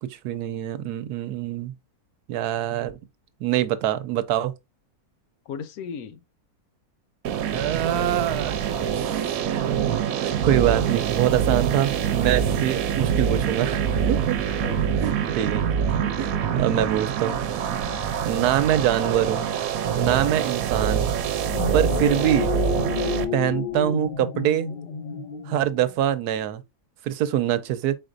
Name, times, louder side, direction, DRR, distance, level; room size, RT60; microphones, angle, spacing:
voice 1, 0.0-1.7 2.3-3.0 3.4-4.5 7.3-8.6 8.9-9.7 10.2-14.4 15.0-15.6 16.2-17.4 18.2-19.5 20.0-21.1 21.7-22.5 23.3-24.7 25.5-26.6 27.0-28.0, right 11 dB, 90° right, 1.2 m, -24 dB
voice 2, 5.5-6.2 14.4-15.1 16.0-16.6 17.9-18.2 20.1-20.3 21.6-21.9, left 7 dB, 75° left, 1.1 m, -39 dB
sound 1, 7.2-23.2, right 8 dB, 70° right, 1.0 m, -25 dB
sound 2, 21.3-25.9, left 7 dB, 55° left, 0.5 m, -30 dB
4.5 x 4.3 x 2.5 m
omnidirectional pair, 1.6 m